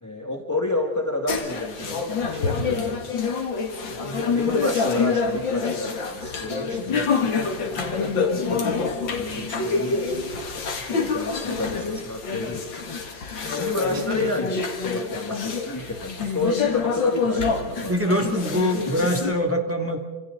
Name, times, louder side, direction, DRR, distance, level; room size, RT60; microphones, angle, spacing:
voice 1, 0.0-3.0 3.8-8.6 9.1-10.2 10.8-12.9 13.5-17.9, left 2 dB, 10° left, 2 dB, 1.6 m, -30 dB
sound 1, 1.3-19.3, left 5 dB, 80° left, 2.6 m, -26 dB
voice 2, 17.9-20.0, equal, 5° right, 2 dB, 2.1 m, -23 dB
29.5 x 26.5 x 3.8 m, 1.3 s
omnidirectional pair, 2.1 m